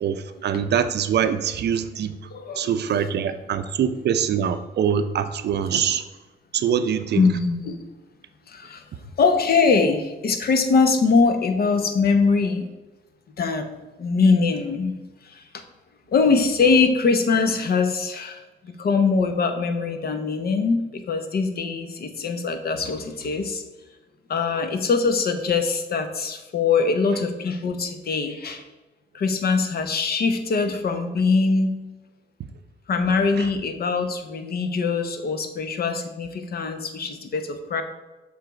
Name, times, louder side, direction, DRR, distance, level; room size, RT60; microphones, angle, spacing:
voice 1, 0.0-2.1 2.6-6.0 6.5-7.2 33.4-33.5, right 8 dB, 55° right, 10 dB, 0.5 m, -24 dB
voice 2, 2.3-3.1 3.9-4.0 5.7-5.8 7.1-7.8 8.5-8.8 9.2-12.7 13.4-13.7 14.0-14.9 15.2-15.4 16.1-23.6 24.3-28.6 29.1-31.8 32.9-37.8, left 4 dB, 50° left, 7 dB, 0.8 m, -22 dB
6.7 x 3.5 x 5.1 m, 1.1 s
cardioid pair, 90°, 20 cm